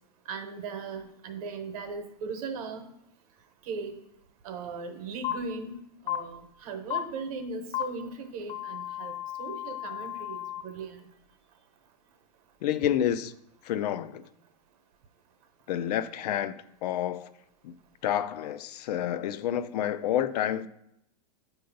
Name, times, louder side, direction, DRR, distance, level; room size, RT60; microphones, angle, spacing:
voice 1, 0.3-2.9 3.7-3.9 4.4-5.8 6.1-9.1 9.4-11.0, right 4 dB, 60° right, 0.9 m, -38 dB
sound 1, 5.2-5.3 6.1-6.2 6.9-7.0 7.7-7.8 8.5-10.6, left 13 dB, 25° left, 0.6 m, -34 dB
voice 2, 12.6-13.3 13.6-14.2 15.7-17.3 17.6-17.8 18.0-20.7, left 10 dB, 70° left, 0.4 m, -29 dB
7.6 x 2.7 x 5.2 m
supercardioid pair, 150°, 21 cm